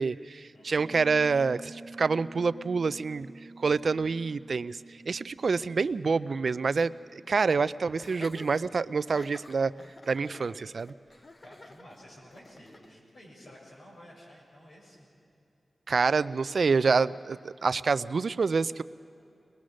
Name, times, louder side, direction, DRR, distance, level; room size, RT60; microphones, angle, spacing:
voice 1, 0.0-3.3 3.6-9.7 10.1-10.9 15.9-18.8, right 4 dB, 65° right, 16 dB, 0.4 m, -27 dB
Piano, 0.8-9.3, right 2 dB, 40° right, 1.3 m, -50 dB
Laughter, 8.0-12.9, left 2 dB, 40° left, 1.0 m, -50 dB
voice 2, 10.3-10.6 11.4-15.1, equal, 85° left, -3 dB, 6.5 m, -52 dB
23.0 x 20.5 x 6.3 m, 2.8 s
wide cardioid pair, 90°, 0 cm